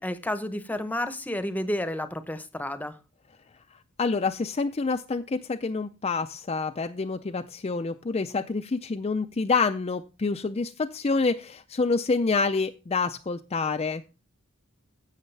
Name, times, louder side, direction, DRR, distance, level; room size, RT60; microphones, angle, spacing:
voice 1, 0.0-3.0, left 1 dB, 10° left, 11 dB, 0.8 m, -31 dB
voice 2, 4.0-14.0, left 4 dB, 30° left, 7 dB, 0.4 m, -27 dB
16.0 x 6.4 x 3.3 m, 0.32 s
head